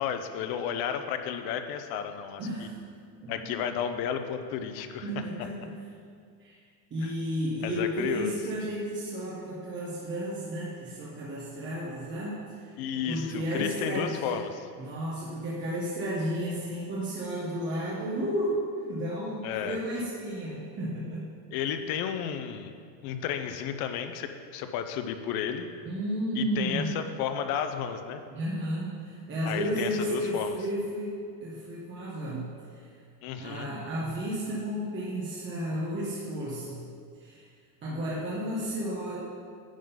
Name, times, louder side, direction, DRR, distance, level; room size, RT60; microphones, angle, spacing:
voice 1, 0.0-2.7 3.3-5.1 7.0-7.1 7.6-8.4 12.8-14.7 19.4-19.8 21.5-22.7 23.0-25.7 26.4-28.2 29.4-30.6 33.2-33.7, left 8 dB, 50° left, 8 dB, 0.7 m, -32 dB
voice 2, 2.4-2.8 3.2-3.5 5.0-5.7 6.4-6.6 6.9-12.8 13.1-14.4 14.8-18.6 18.9-21.3 25.8-27.0 28.3-32.9 33.4-36.8 37.2-37.5 37.8-39.2, equal, 25° right, -6 dB, 1.2 m, -33 dB
10.0 x 3.8 x 5.5 m, 2.2 s
supercardioid pair, 135°, 50 cm